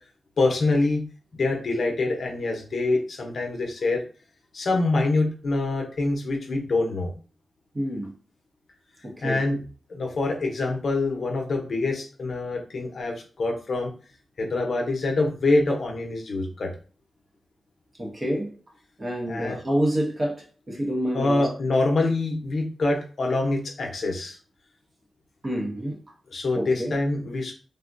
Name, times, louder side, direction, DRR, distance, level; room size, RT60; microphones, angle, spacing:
voice 1, 0.4-1.0 1.3-4.0 4.5-7.1 9.2-9.6 9.9-13.9 14.4-16.7 19.3-19.6 21.1-24.4 26.3-27.5, left 2 dB, 60° left, 0.6 m, -25 dB
voice 2, 7.7-8.1 9.0-9.4 18.0-18.5 19.0-21.5 25.4-26.0 26.5-26.9, equal, 25° right, 0.7 m, -28 dB
3.4 x 2.1 x 2.5 m
wide cardioid pair, 130°, 0 cm